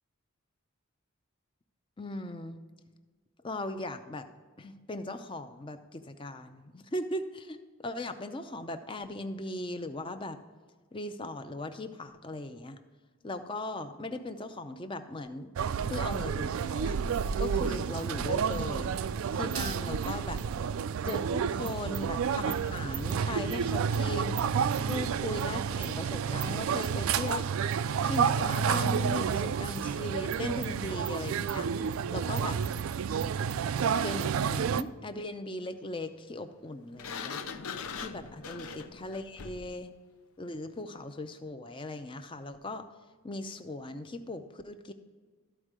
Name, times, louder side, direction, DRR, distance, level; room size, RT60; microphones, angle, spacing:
voice 1, 2.0-2.6 3.4-4.3 4.6-10.4 10.9-12.8 13.2-15.5 15.8-17.0 17.4-19.0 19.3-20.4 21.0-27.5 28.0-31.7 32.1-32.6 34.0-37.4 38.0-39.9 40.4-42.8 43.2-44.9, left 2 dB, 25° left, 9 dB, 0.5 m, -38 dB
sound 1, 15.6-34.8, right 7 dB, 70° right, 0.3 m, -30 dB
Sliding door, 37.0-39.8, left 5 dB, 75° left, 0.6 m, -40 dB
13.5 x 4.5 x 4.9 m, 1.4 s
head